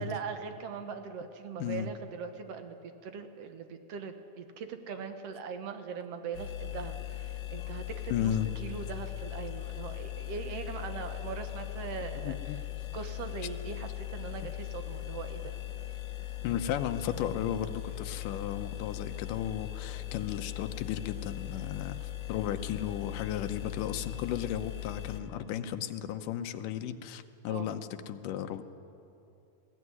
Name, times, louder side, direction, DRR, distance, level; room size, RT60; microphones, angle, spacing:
voice 1, 0.0-12.4 12.9-15.6 27.5-27.7, right 6 dB, 60° right, 7 dB, 1.9 m, -40 dB
sound 1, 6.3-25.2, left 15 dB, 60° left, 2.2 m, -39 dB
voice 2, 8.1-8.5 12.2-12.6 16.4-27.8 28.1-28.6, left 10 dB, 80° left, 8 dB, 2.5 m, -34 dB
20.5 x 15.5 x 9.7 m, 2.9 s
omnidirectional pair, 3.7 m